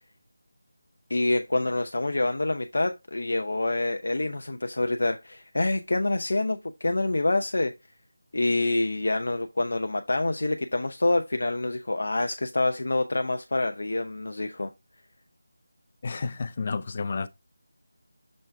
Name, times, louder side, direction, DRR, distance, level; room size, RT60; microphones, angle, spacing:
voice 1, 1.1-7.7 8.3-14.7, left 2 dB, 65° left, 0.6 m, -26 dB
voice 2, 16.0-17.3, left 4 dB, 25° left, 0.5 m, -31 dB
6.4 x 3.4 x 4.4 m
figure-of-eight pair, 180°, 0 cm